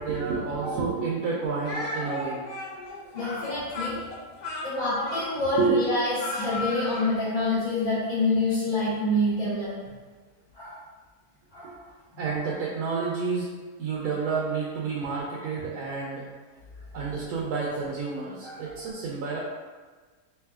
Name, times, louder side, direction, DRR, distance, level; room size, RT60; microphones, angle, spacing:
voice 1, 0.0-2.4 5.6-5.8 12.2-13.5 13.8-16.3 16.9-19.4, right 4 dB, 80° right, -4 dB, 1.1 m, -29 dB
Speech, 1.6-7.1, left 2 dB, 85° left, 0.4 m, -35 dB
voice 2, 1.7-2.3 3.1-4.0 4.6-9.7 10.5-10.8 11.5-11.7 18.4-18.9, left 2 dB, 35° left, -14 dB, 1.2 m, -27 dB
3.6 x 3.3 x 2.3 m, 1.4 s
omnidirectional pair, 1.6 m